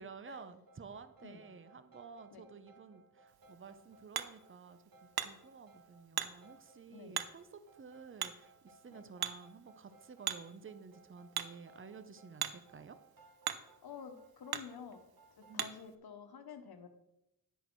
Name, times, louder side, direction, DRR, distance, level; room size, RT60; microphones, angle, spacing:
voice 1, 0.0-4.8 5.2-13.0 15.5-15.7, right 5 dB, 35° right, 11 dB, 0.7 m, -52 dB
sound 1, 0.7-15.8, right 3 dB, 65° right, 1.8 m, -64 dB
Hammer, 3.3-15.9, right 9 dB, 90° right, 0.7 m, -44 dB
voice 2, 13.8-15.0 15.5-16.9, left 6 dB, 85° left, 8 dB, 1.0 m, -50 dB
10.0 x 6.4 x 4.6 m, 0.88 s
wide cardioid pair, 80°, 36 cm